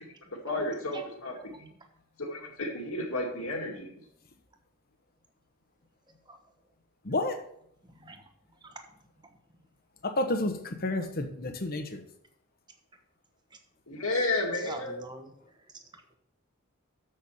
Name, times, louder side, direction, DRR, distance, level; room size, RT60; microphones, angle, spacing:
voice 1, 0.4-1.7 2.2-3.9 13.9-14.9, left 2 dB, 70° left, 1 dB, 2.2 m, -32 dB
voice 2, 7.0-7.4 10.0-12.0, left 2 dB, 40° left, 8 dB, 1.0 m, -30 dB
voice 3, 7.9-8.2 14.6-15.3, right 1 dB, 20° right, 5 dB, 1.1 m, -43 dB
7.2 x 6.6 x 7.0 m, 0.70 s
head